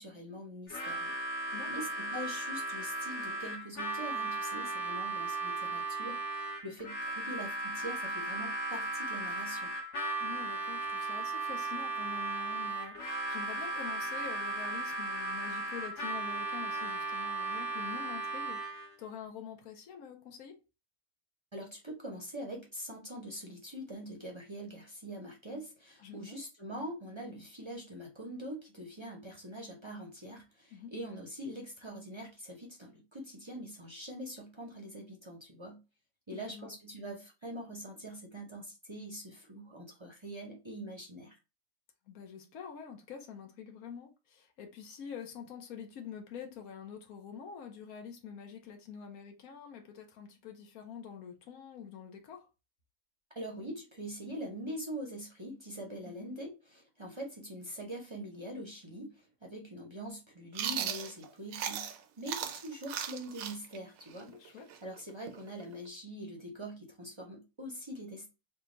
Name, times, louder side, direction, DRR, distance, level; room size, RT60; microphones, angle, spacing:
voice 1, 0.0-9.7 21.5-35.8 36.3-41.4 53.3-68.3, equal, 30° right, 0.6 m, -44 dB
Harmonica, 0.7-18.9, right 2 dB, 60° left, 1.3 m, -36 dB
voice 2, 1.5-1.9 10.2-20.6 26.0-26.4 30.7-30.9 36.3-36.7 42.1-52.5 56.0-56.3 64.3-64.7, left 7 dB, 80° left, 1.3 m, -46 dB
Chewing mastication, 60.5-62.0 62.3-65.9, right 8 dB, 75° right, 1.0 m, -37 dB
3.4 x 2.3 x 3.9 m
omnidirectional pair, 1.5 m